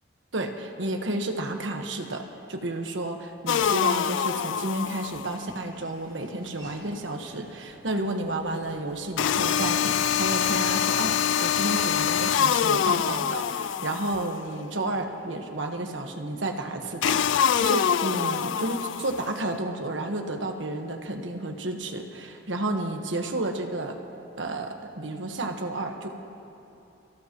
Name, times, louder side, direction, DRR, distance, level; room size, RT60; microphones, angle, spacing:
voice 1, 0.3-24.0 24.4-26.1, right 2 dB, 80° right, 4 dB, 1.4 m, -31 dB
sound 1, 3.5-5.4 9.2-14.4 17.0-19.4, left 8 dB, 80° left, 0.4 m, -25 dB
Laughter / Walk footsteps, 5.6-13.1, equal, 25° right, 3.0 m, -53 dB
29.0 x 16.0 x 3.1 m, 2.9 s
head